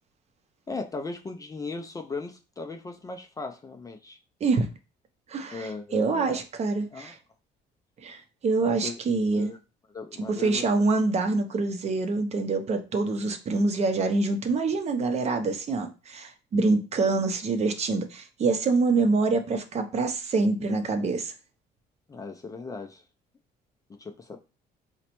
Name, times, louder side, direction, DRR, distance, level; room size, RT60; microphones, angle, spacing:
voice 1, 0.7-4.2 5.5-6.4 6.9-7.1 8.6-9.0 9.3-9.6 9.9-10.6 11.1-11.2 22.1-23.0 23.9-24.4, left 3 dB, 20° left, 0.3 m, -37 dB
voice 2, 5.3-7.2 8.0-9.5 10.2-21.3, right 3 dB, 40° right, 0.6 m, -26 dB
3.9 x 2.1 x 2.9 m
cardioid pair, 110°, 17 cm